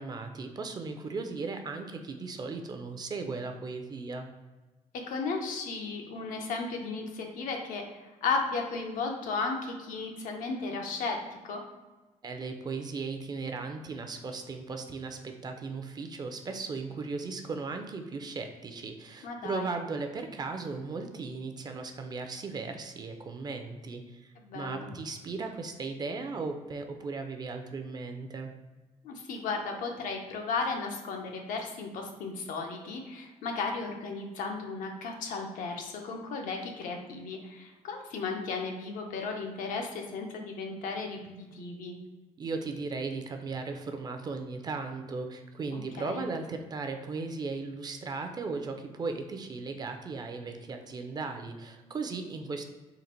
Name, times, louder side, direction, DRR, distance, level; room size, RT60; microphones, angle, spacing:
voice 1, 0.0-4.3 12.2-28.5 42.4-52.6, right 4 dB, 30° right, 5 dB, 0.4 m, -37 dB
voice 2, 5.1-11.2 11.4-11.6 19.2-19.7 24.4-24.9 29.0-42.0 45.7-46.3, left 4 dB, 85° left, 2 dB, 0.7 m, -35 dB
3.9 x 2.5 x 4.3 m, 1.2 s
cardioid pair, 135°, 13 cm